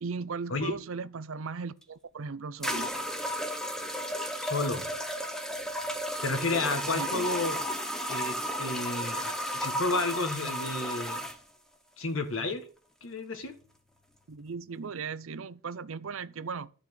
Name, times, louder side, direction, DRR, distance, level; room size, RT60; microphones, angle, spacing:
voice 1, 0.0-2.9 6.9-7.3 14.3-16.7, right 5 dB, 70° right, 0.6 m, -37 dB
sound 1, 1.8-1.9 2.6-11.4, equal, 5° left, 1.1 m, -33 dB
voice 2, 4.3-4.9 6.2-7.6 8.1-11.2 12.0-12.6 13.0-13.5, left 3 dB, 70° left, 1.6 m, -31 dB
12.0 x 4.3 x 8.1 m
head